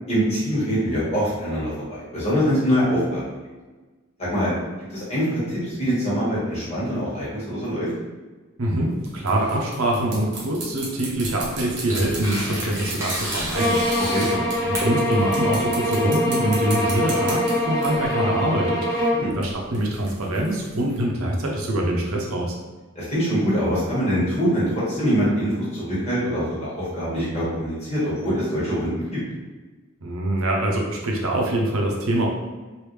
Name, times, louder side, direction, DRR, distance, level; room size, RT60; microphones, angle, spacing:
voice 1, 0.1-3.2 4.2-4.5 4.9-7.9 14.1-14.2 19.1-19.3 22.9-29.2, equal, 30° left, -8 dB, 1.4 m, -24 dB
voice 2, 8.6-22.6 30.0-32.3, right 1 dB, 90° right, -1 dB, 0.7 m, -24 dB
sound 1, 8.9-14.8 15.1-18.1 19.3-21.0, right 2 dB, 55° right, 0.9 m, -36 dB
Tearing, 11.2-18.0, equal, 15° right, 0.8 m, -32 dB
sound 2, 13.5-19.3, left 1 dB, 15° left, 1.2 m, -23 dB
3.4 x 2.6 x 3.2 m, 1.3 s
head